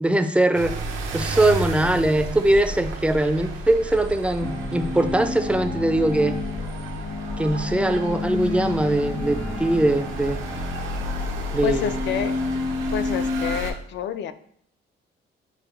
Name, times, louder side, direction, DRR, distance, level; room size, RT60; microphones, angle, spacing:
voice 1, 0.0-0.8 1.1-6.4 7.4-10.4 11.5-11.9, right 1 dB, 5° right, 8 dB, 0.3 m, -21 dB
sound 1, 0.5-13.7, right 2 dB, 90° right, 0.6 m, -32 dB
sound 2, 4.4-13.5, left 3 dB, 80° left, 1.5 m, -30 dB
voice 2, 11.6-12.4 12.9-14.3, left 9 dB, 65° left, 12 dB, 0.4 m, -28 dB
6.6 x 2.2 x 3.1 m, 0.66 s
cardioid pair, 90°, 20 cm